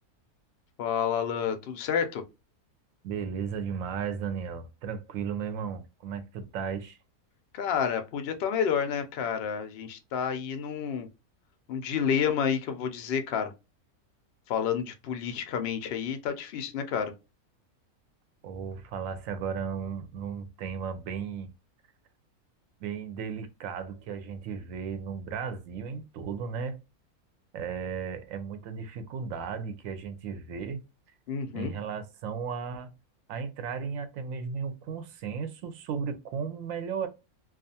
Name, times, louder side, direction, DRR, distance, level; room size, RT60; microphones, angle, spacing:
voice 1, 0.8-2.2 7.5-11.1 11.7-13.5 14.5-17.1 31.3-31.7, left 7 dB, 70° left, 0.5 m, -29 dB
voice 2, 3.0-7.0 18.4-21.5 22.8-26.8 27.5-30.8 31.5-32.9 33.3-37.1, right 6 dB, 70° right, 0.9 m, -35 dB
2.4 x 2.4 x 2.6 m
omnidirectional pair, 1.6 m